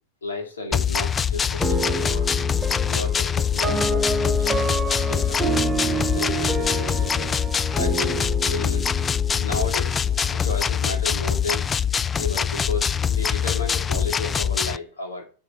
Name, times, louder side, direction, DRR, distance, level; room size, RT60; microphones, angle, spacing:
voice 1, 0.2-2.3 2.9-5.5 5.9-7.3 7.8-8.9 9.4-11.6 12.2-15.2, left 3 dB, 70° left, 3 dB, 2.3 m, -33 dB
sound 1, 0.7-14.8, left 7 dB, 20° left, 0.3 m, -24 dB
sound 2, 1.6-10.8, right 2 dB, 5° right, 1.2 m, -29 dB
8.1 x 5.6 x 5.5 m, 0.37 s
figure-of-eight pair, 90°, 0 cm